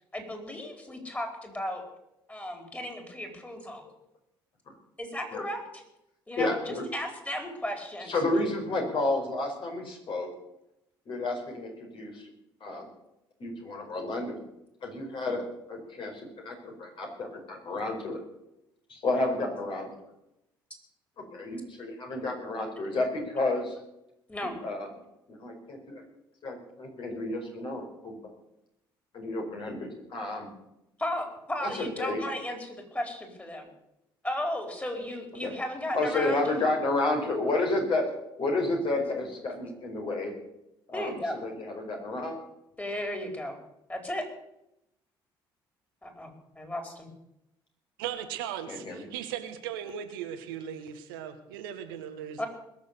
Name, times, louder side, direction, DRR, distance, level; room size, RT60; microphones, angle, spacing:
voice 1, 0.1-1.8 2.3-3.8 5.0-5.6 6.3-8.1 24.3-24.6 31.0-33.7 34.2-36.5 40.9-41.3 42.8-43.5 43.9-44.2 46.0-47.1 52.4-52.5, left 1 dB, 15° left, 4 dB, 4.7 m, -35 dB
voice 2, 6.4-6.9 8.1-10.3 11.1-12.3 12.6-12.9 13.4-14.4 14.8-18.2 18.9-19.9 21.2-23.8 24.4-24.9 25.3-26.0 26.4-28.1 29.1-30.5 31.6-32.2 35.4-35.5 35.9-38.1 38.4-40.3 40.9-42.4 48.7-49.1, left 2 dB, 45° left, 1 dB, 5.2 m, -31 dB
voice 3, 48.0-52.4, right 9 dB, 70° right, 7 dB, 1.5 m, -37 dB
21.5 x 7.1 x 8.3 m, 0.85 s
figure-of-eight pair, 50°, 12 cm